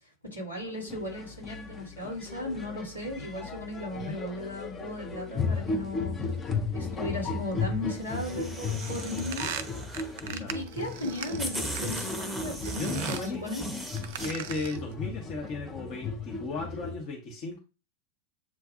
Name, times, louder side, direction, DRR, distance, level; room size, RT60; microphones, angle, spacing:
voice 1, 0.3-6.2 6.7-9.5 10.3-13.6, left 1 dB, 85° left, -3 dB, 2.7 m, -37 dB
sound 1, 0.7-16.9, left 4 dB, 20° left, 0.6 m, -35 dB
sound 2, 8.0-10.3 11.0-11.1 11.4-14.3, right 1 dB, 5° right, 0.9 m, -37 dB
sound 3, 8.8-12.2 12.6-13.3 13.9-14.9, right 9 dB, 50° right, 0.4 m, -40 dB
voice 2, 10.2-10.6 12.7-13.4 14.2-17.6, left 3 dB, 40° left, -1 dB, 1.0 m, -36 dB
7.3 x 2.5 x 2.5 m, 0.30 s
figure-of-eight pair, 90°, 0 cm